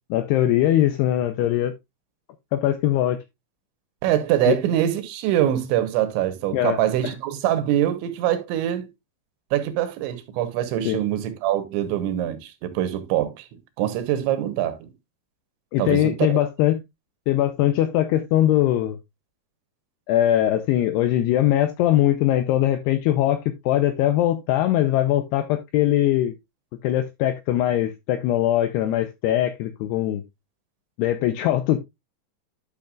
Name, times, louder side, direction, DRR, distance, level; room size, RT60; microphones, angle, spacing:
voice 1, 0.1-1.7 2.5-3.2 4.5-4.6 6.5-6.8 7.0-7.1 10.9-11.0 15.7-16.8 17.3-19.0 20.1-26.3 26.8-30.2 31.0-31.9, left 13 dB, 90° left, 2.3 m, -21 dB
voice 2, 4.0-8.9 9.5-13.5 13.8-14.9 15.8-16.3, right 12 dB, 80° right, 3.2 m, -24 dB
11.5 x 6.5 x 2.4 m
omnidirectional pair, 5.4 m